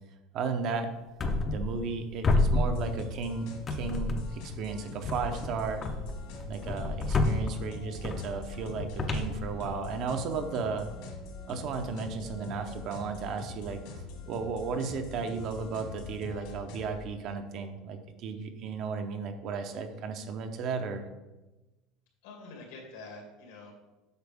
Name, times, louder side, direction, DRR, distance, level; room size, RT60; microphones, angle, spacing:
voice 1, 0.3-0.9 1.5-5.8 6.5-10.9 11.5-13.8 14.3-21.1, right 5 dB, 40° right, 7 dB, 0.7 m, -34 dB
sound 1, 1.2-2.0 2.2-3.3 3.7-4.5 5.0-10.1, left 2 dB, 20° left, 0.6 m, -30 dB
sound 2, 2.7-17.0, left 3 dB, 60° left, 1.7 m, -43 dB
voice 2, 22.2-23.7, left 3 dB, 85° left, 0 dB, 2.5 m, -46 dB
8.1 x 6.0 x 3.5 m, 1.1 s
cardioid pair, 175°, 0 cm